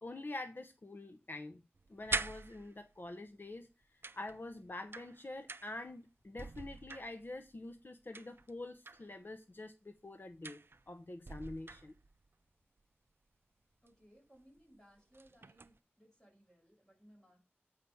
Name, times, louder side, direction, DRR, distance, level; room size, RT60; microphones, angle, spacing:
voice 1, 0.0-1.6 1.9-10.6 10.9-11.9, left 2 dB, 60° left, 0.8 m, -46 dB
sound 1, 1.7-3.1 4.0-5.9 6.2-7.5 8.1-9.1 10.4-10.9 11.3-12.3 13.9-14.0 14.4-14.6 15.0-15.8, right 3 dB, 70° right, 0.4 m, -44 dB
voice 2, 13.8-17.4, equal, 15° left, 6.2 m, -64 dB
8.4 x 5.0 x 5.5 m
wide cardioid pair, 50°, 4 cm